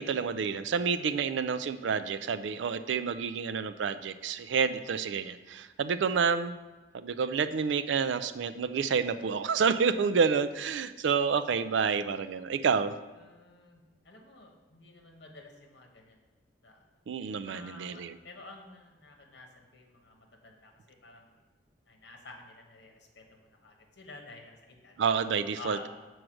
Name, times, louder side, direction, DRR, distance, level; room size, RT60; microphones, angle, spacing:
voice 1, 0.0-6.6 6.9-12.9 17.1-18.2 25.0-25.8, right 6 dB, 75° right, 12 dB, 0.4 m, -29 dB
voice 2, 13.1-16.2 16.6-16.9 17.4-21.3 21.9-24.9 25.6-25.9, left 2 dB, 65° left, 1 dB, 1.2 m, -50 dB
6.3 x 4.7 x 6.1 m, 1.2 s
head